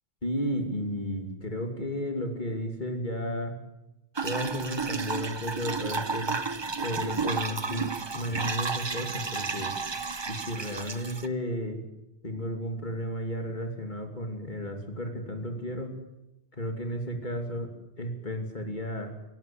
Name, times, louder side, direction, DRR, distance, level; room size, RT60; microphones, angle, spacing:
voice 1, 0.2-3.5 4.2-6.3 6.8-9.7 10.3-11.8 12.2-15.9 16.5-17.7 18.0-19.1, equal, 50° left, 4 dB, 3.0 m, -33 dB
sound 1, 4.1-11.3, right 4 dB, 30° right, 0.8 m, -32 dB
18.0 x 17.0 x 8.7 m, 0.94 s
omnidirectional pair, 1.1 m